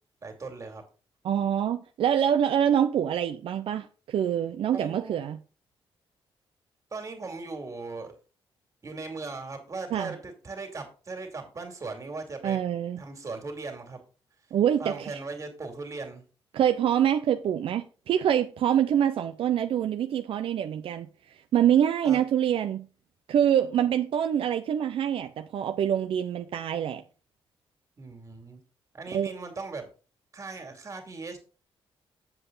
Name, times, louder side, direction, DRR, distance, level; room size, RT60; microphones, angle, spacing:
voice 1, 0.2-0.8 4.7-5.2 6.9-8.1 8.8-12.6 13.0-14.0 14.8-16.2 22.0-22.2 28.0-28.6 28.9-29.9 30.3-31.4, right 3 dB, 35° right, 2.6 m, -38 dB
voice 2, 1.2-5.4 9.9-10.1 12.4-13.0 14.5-15.2 16.5-21.1 21.5-22.9 23.3-27.0 29.1-29.3, right 9 dB, 70° right, 0.6 m, -25 dB
7.9 x 7.7 x 3.9 m
cardioid pair, 120°, 10 cm